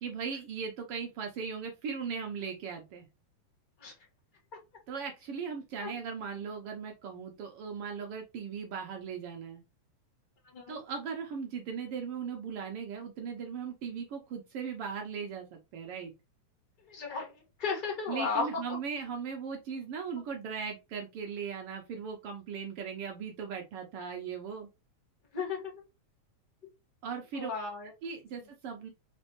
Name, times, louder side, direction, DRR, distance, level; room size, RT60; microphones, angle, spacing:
voice 1, 0.0-3.1 4.9-9.6 10.7-16.1 18.1-24.7 27.0-27.5 28.0-28.9, right 6 dB, 70° right, 2 dB, 1.4 m, -38 dB
voice 2, 16.9-18.6 25.3-25.7 27.3-27.9, left 4 dB, 25° left, -2 dB, 1.1 m, -34 dB
4.2 x 4.0 x 3.0 m, 0.25 s
omnidirectional pair, 3.4 m